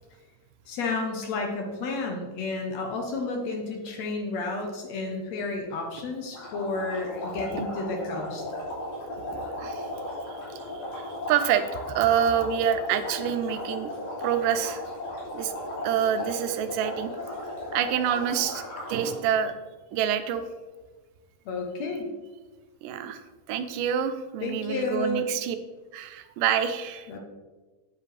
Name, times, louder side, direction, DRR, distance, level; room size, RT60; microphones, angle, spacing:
voice 1, 0.7-8.4 21.5-22.1 24.4-25.3 27.1-27.2, left 3 dB, 70° left, 2 dB, 1.9 m, -31 dB
sound 1, 6.3-19.1, left 1 dB, 90° left, 4.6 m, -36 dB
voice 2, 9.3-9.9 10.5-13.9 14.2-14.8 15.3-15.5 15.8-17.1 17.7-18.6 18.9-19.5 19.9-20.4 22.8-25.6 25.9-27.1, right 9 dB, 90° right, 9 dB, 2.2 m, -27 dB
9.3 x 7.5 x 3.3 m, 1.3 s
omnidirectional pair, 3.7 m